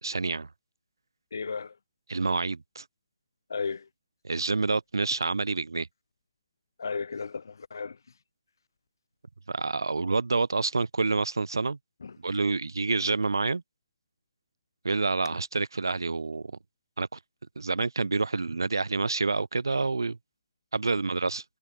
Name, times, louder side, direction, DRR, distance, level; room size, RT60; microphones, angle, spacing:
voice 1, 0.0-0.5 2.1-2.8 4.2-5.9 9.5-11.8 12.2-13.6 14.8-16.5 17.0-17.2 17.6-20.2 20.7-21.4, right 3 dB, 70° right, 3.1 m, -28 dB
voice 2, 1.3-1.7 3.5-3.9 6.8-8.0 12.0-12.1, left 5 dB, 60° left, 1.9 m, -34 dB
figure-of-eight pair, 135°, 2 cm